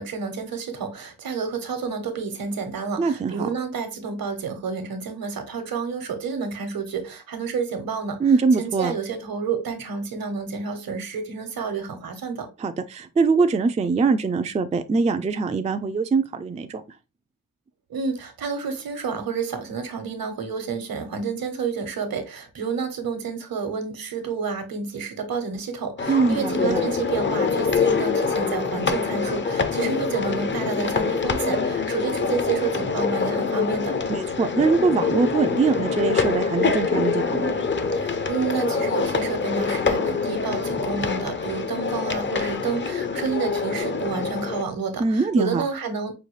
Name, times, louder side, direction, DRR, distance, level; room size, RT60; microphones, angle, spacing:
voice 1, 0.0-12.5 17.9-33.9 37.9-46.1, right 5 dB, 75° right, 1.0 m, -30 dB
voice 2, 3.0-3.5 8.2-8.9 12.6-16.8 26.1-26.8 34.1-37.5 45.0-45.6, right 4 dB, 20° right, 0.3 m, -22 dB
sound 1, 26.0-44.6, left 5 dB, 35° left, 0.5 m, -25 dB
5.3 x 2.3 x 3.1 m
wide cardioid pair, 110°, 35 cm